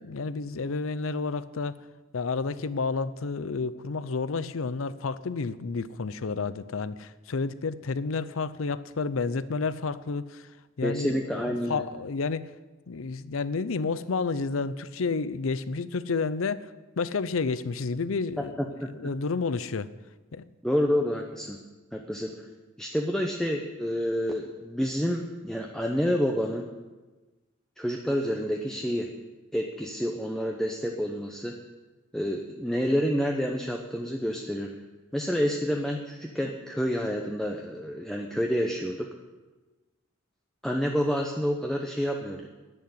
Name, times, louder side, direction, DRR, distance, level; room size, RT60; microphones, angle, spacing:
voice 1, 0.0-1.8 2.1-10.5 10.8-12.5 12.9-19.9 20.3-20.4, left 4 dB, 80° left, 15 dB, 0.6 m, -30 dB
voice 2, 10.8-11.8 18.4-18.5 18.8-19.1 20.6-21.6 21.9-22.4 22.8-26.7 27.8-29.1 29.5-31.5 32.1-34.7 35.1-39.1 40.6-42.5, equal, 5° left, 1 dB, 0.8 m, -28 dB
10.5 x 8.5 x 9.5 m, 1.2 s
head